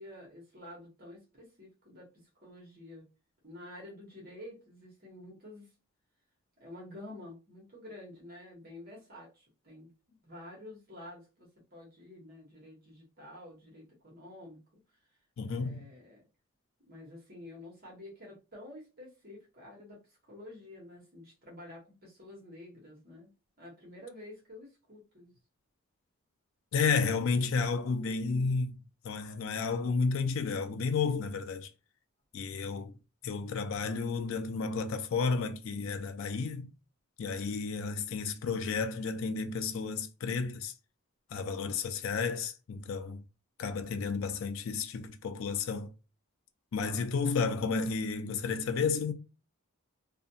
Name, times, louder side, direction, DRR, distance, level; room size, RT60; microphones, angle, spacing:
voice 1, 0.0-2.1 2.4-3.1 3.4-5.7 6.6-14.6 15.5-16.2 16.9-23.3 23.6-25.3, left 1 dB, 40° right, 1.0 m, -49 dB
voice 2, 15.4-15.9 26.7-28.8 29.0-31.7 32.3-33.0 33.2-36.7 37.2-40.7 41.3-43.2 43.6-45.9 46.7-49.1, left 5 dB, 60° left, 0.3 m, -32 dB
2.4 x 2.2 x 2.7 m
head